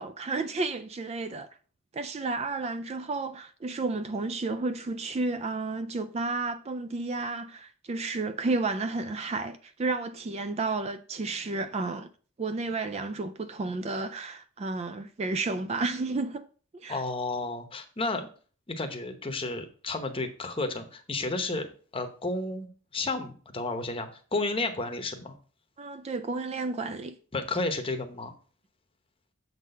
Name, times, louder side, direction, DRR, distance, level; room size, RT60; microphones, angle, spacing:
voice 1, 0.0-1.5 1.9-12.1 12.4-16.5 16.7-17.0 25.8-27.2, right 3 dB, 30° right, 0.3 m, -32 dB
voice 2, 16.9-18.3 18.7-21.7 21.9-25.3 27.3-28.3, left 2 dB, 25° left, 0.9 m, -32 dB
7.3 x 4.0 x 5.4 m
head